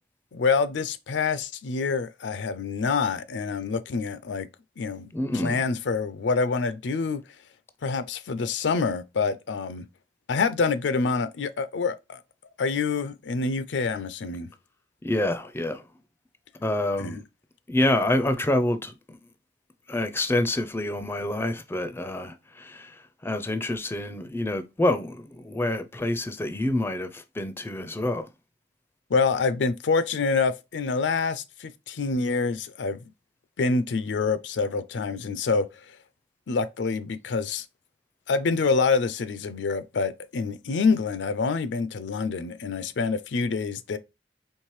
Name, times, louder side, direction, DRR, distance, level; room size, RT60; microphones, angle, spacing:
voice 1, 0.3-4.5 4.8-5.1 5.3-7.2 7.8-9.9 10.3-12.2 12.6-14.5 17.0-17.2 29.1-33.0 33.6-35.7 36.5-37.6 38.3-44.0, left 4 dB, 85° left, 0.5 m, -26 dB
voice 2, 5.1-5.6 15.0-15.8 16.6-17.2 17.7-19.2 19.9-22.9 23.2-28.3, left 1 dB, 15° left, 0.4 m, -27 dB
4.5 x 3.2 x 3.1 m
head